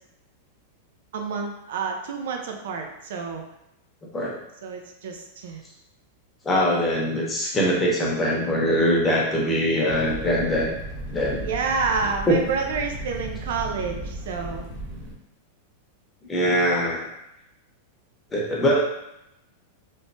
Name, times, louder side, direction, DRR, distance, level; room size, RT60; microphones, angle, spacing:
voice 1, 1.1-3.4 4.6-5.6 11.4-14.6, right 5 dB, 75° right, 3 dB, 0.5 m, -29 dB
voice 2, 6.4-10.7 11.1-11.5 12.3-12.4 16.3-17.0 18.3-18.8, equal, 15° left, -4 dB, 0.8 m, -22 dB
Fire, 9.9-15.1, right 1 dB, 45° right, 1.0 m, -36 dB
3.1 x 2.1 x 2.7 m, 0.85 s
supercardioid pair, 135°, 0 cm